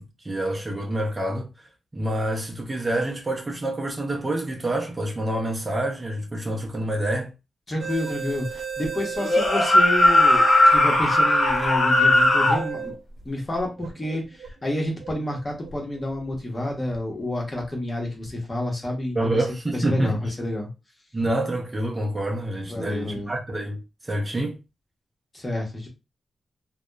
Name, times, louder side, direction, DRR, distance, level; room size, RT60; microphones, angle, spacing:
voice 1, 0.0-1.5 1.9-7.3 19.2-20.3 21.1-24.6, right 1 dB, 20° right, 0.5 m, -27 dB
voice 2, 7.7-12.9 13.2-19.5 19.7-20.7 22.7-23.3 25.3-25.9, left 1 dB, 25° left, 0.8 m, -29 dB
sound 1, 7.8-17.0 17.6-17.7 18.2-18.4, right 6 dB, 80° right, 0.7 m, -34 dB
sound 2, 9.2-12.6, left 1 dB, 70° left, 0.6 m, -18 dB
2.8 x 2.1 x 2.2 m
wide cardioid pair, 135°, 0 cm